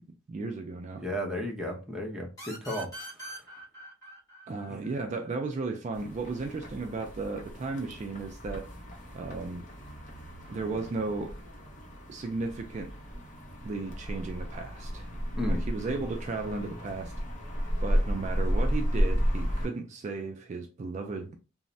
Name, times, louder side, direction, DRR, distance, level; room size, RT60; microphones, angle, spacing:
voice 1, 0.3-1.0 4.5-8.7 9.1-9.7 10.5-11.4 12.1-12.9 13.6-15.1 15.5-17.1 17.8-21.4, right 3 dB, 35° right, 0.3 m, -35 dB
voice 2, 1.0-2.9 4.7-4.8 15.3-15.6, equal, 5° right, 0.6 m, -34 dB
sound 1, 2.4-5.8, right 1 dB, 20° left, 1.2 m, -44 dB
sound 2, 5.9-19.7, equal, 40° left, 0.7 m, -33 dB
3.1 x 2.0 x 2.5 m
head